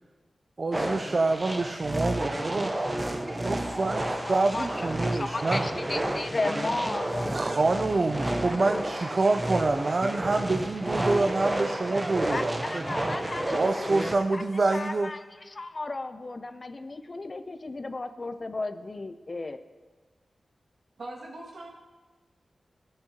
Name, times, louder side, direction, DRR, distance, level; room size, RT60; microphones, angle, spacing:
voice 1, 0.6-2.7 3.4-5.6 7.3-12.8 13.5-15.1, right 3 dB, 45° right, 6 dB, 0.4 m, -26 dB
sound 1, 0.7-14.2, right 1 dB, 20° right, 0.7 m, -31 dB
voice 2, 4.2-8.3 12.3-14.4 14.7-19.6, left 2 dB, 40° left, 10 dB, 0.5 m, -35 dB
voice 3, 21.0-21.7, right 2 dB, 75° right, -3 dB, 2.0 m, -40 dB
15.0 x 8.7 x 2.9 m, 1.3 s
wide cardioid pair, 85°, 0 cm